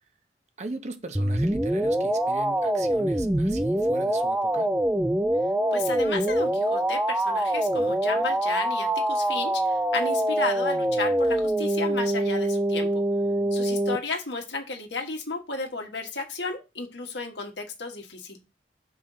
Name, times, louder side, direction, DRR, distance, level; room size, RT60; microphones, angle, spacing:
voice 1, 0.6-4.7 13.2-13.6, right 2 dB, 40° right, 0.8 m, -39 dB
sound 1, 1.1-14.0, right 1 dB, 10° right, 0.3 m, -24 dB
voice 2, 5.7-13.0 13.5-18.4, left 4 dB, 75° left, 1.6 m, -33 dB
5.4 x 4.0 x 5.6 m
head